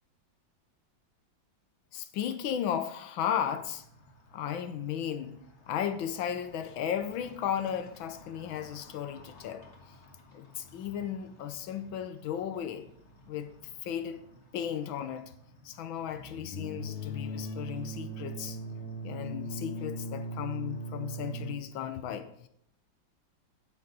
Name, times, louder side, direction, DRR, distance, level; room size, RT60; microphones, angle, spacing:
voice 1, 1.9-3.8 4.3-5.4 5.7-9.7 10.3-12.9 13.3-13.5 13.8-14.2 14.5-15.3 15.6-18.6 19.0-22.5, left 9 dB, 85° left, 1.6 m, -35 dB
sound 1, 3.5-21.5, right 1 dB, 40° left, 1.7 m, -43 dB
9.2 x 9.1 x 4.0 m
omnidirectional pair, 2.1 m